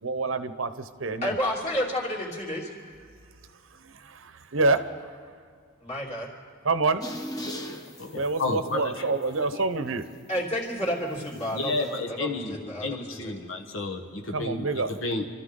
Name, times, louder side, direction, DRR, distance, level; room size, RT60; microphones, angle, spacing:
voice 1, 0.0-1.4 3.8-4.9 6.6-7.0 8.1-10.0 14.3-14.9, right 3 dB, 80° right, 11 dB, 0.9 m, -27 dB
voice 2, 1.2-2.7 5.8-6.3 10.3-13.4, equal, 35° left, -3 dB, 3.2 m, -31 dB
sound 1, 7.0-8.7 9.2-9.4 11.3-11.9, left 1 dB, 20° left, 1.1 m, -38 dB
voice 3, 8.0-9.1 11.5-15.2, left 2 dB, 75° left, 3 dB, 1.3 m, -31 dB
28.0 x 13.5 x 3.8 m, 2.1 s
head